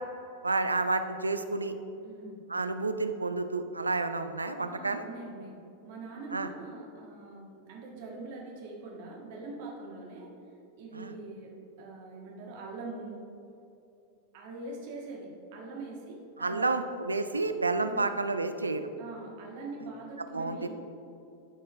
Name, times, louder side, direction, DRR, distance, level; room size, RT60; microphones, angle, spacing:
voice 1, 0.4-1.7 2.5-5.0 6.3-6.5 11.0-11.1 16.4-18.8 20.3-20.7, right 3 dB, 80° right, 9 dB, 0.4 m, -30 dB
voice 2, 2.0-2.4 4.6-5.5 5.8-10.3 10.8-11.5 11.8-13.2 14.3-16.8 17.8-18.1 19.0-20.7, right 3 dB, 50° right, -2 dB, 1.6 m, -43 dB
12.0 x 4.4 x 3.2 m, 2.7 s
figure-of-eight pair, 90°, 0 cm